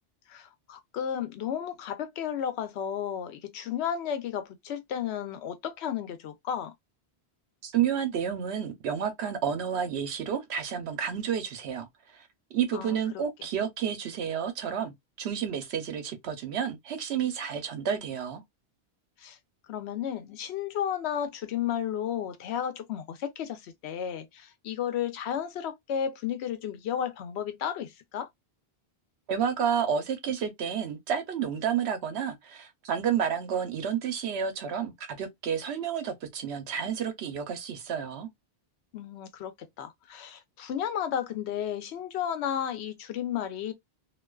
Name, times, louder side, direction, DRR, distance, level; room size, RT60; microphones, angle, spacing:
voice 1, 0.3-6.7 12.7-13.2 19.2-19.4 19.7-28.3 38.9-43.7, left 9 dB, 80° left, 0.8 m, -33 dB
voice 2, 7.6-11.9 12.1-18.4 29.3-38.3, right 8 dB, 85° right, 0.9 m, -30 dB
2.4 x 2.3 x 2.2 m
omnidirectional pair, 1.1 m